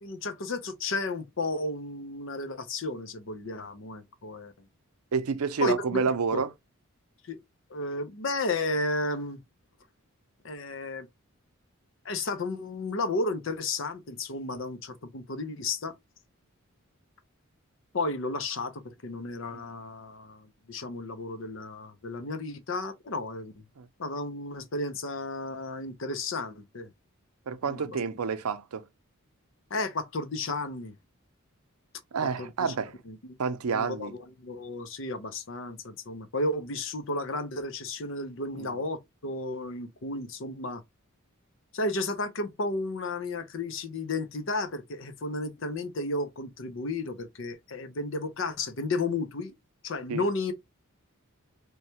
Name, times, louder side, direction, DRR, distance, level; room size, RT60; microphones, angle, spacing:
voice 1, 0.0-4.5 5.6-6.0 6.3-6.4 7.3-7.4 7.7-9.4 10.4-11.1 12.0-15.9 17.9-23.5 24.0-26.9 27.6-28.0 29.7-30.9 32.4-32.7 33.1-33.2 33.7-34.1 34.4-40.8 41.7-49.6 49.8-50.5, left 2 dB, 60° left, 0.6 m, -33 dB
voice 2, 5.1-6.5 19.5-19.6 23.8-23.9 27.5-28.8 32.1-32.9 33.4-34.1 38.6-38.8 50.1-50.2, right 5 dB, 85° right, 0.5 m, -29 dB
3.1 x 2.2 x 2.7 m
head